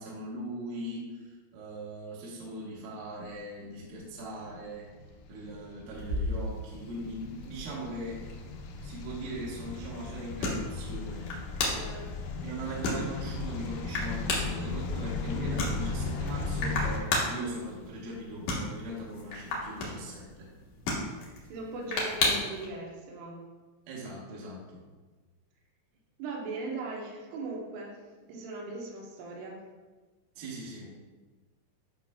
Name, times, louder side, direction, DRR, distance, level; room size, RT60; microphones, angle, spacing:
voice 1, 0.0-4.9 5.3-8.2 8.8-11.3 12.4-20.5 23.9-24.8 30.4-30.9, right 1 dB, 65° right, -5 dB, 2.4 m, -40 dB
sound 1, 4.1-17.0, left 3 dB, 90° left, 2.2 m, -37 dB
sound 2, 5.9-22.7, left 2 dB, 75° left, 1.8 m, -36 dB
voice 2, 11.7-12.3 21.5-23.5 26.2-28.0 28.3-29.6, right 3 dB, 85° right, -2 dB, 3.6 m, -39 dB
10.5 x 5.8 x 2.3 m, 1.3 s
omnidirectional pair, 5.5 m